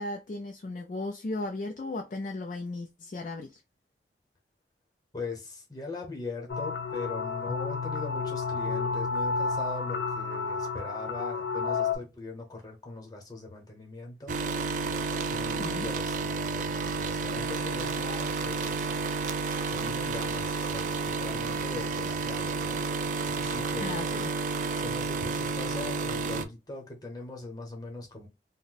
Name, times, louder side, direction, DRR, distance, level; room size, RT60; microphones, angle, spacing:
voice 1, 0.0-3.6 15.6-15.9 23.8-24.3, left 2 dB, 45° left, 0.4 m, -36 dB
voice 2, 5.1-14.7 15.3-18.9 19.7-24.0 24.8-28.3, left 3 dB, 20° left, 0.9 m, -41 dB
sound 1, 6.5-12.0, left 4 dB, 75° left, 0.7 m, -31 dB
sound 2, 14.3-26.4, right 4 dB, 45° right, 0.4 m, -31 dB
2.6 x 2.1 x 3.9 m
head